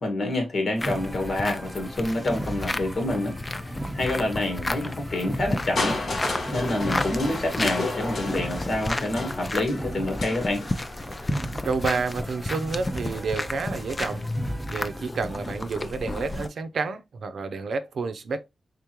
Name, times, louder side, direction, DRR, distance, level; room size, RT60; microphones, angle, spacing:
voice 1, 0.0-3.3 3.7-6.0 6.5-10.6, left 1 dB, 65° left, 1.8 m, -27 dB
sound 1, 0.8-16.5, left 2 dB, 30° left, 0.5 m, -33 dB
sound 2, 0.8-15.1, right 1 dB, 25° right, 1.1 m, -37 dB
Crushing, 5.8-11.7 12.6-12.7, left 2 dB, 80° left, 1.4 m, -32 dB
voice 2, 11.6-14.3 14.6-18.5, right 4 dB, 75° right, 0.5 m, -29 dB
3.7 x 3.6 x 3.0 m
cardioid pair, 70°, 0 cm